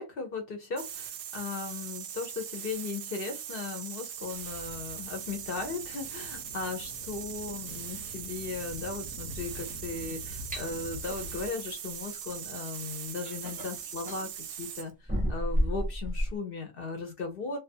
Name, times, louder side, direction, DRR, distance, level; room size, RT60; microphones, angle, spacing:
voice 1, 0.0-17.6, left 4 dB, 55° left, 0.8 m, -37 dB
sound 1, 0.8-14.9, right 9 dB, 90° right, 1.0 m, -40 dB
sound 2, 4.2-11.5, left 2 dB, 80° left, 1.0 m, -46 dB
sound 3, 10.5-10.7 12.5-12.6 13.2-14.3 15.1-16.4, equal, 10° right, 0.4 m, -30 dB
2.4 x 2.3 x 2.6 m
omnidirectional pair, 1.3 m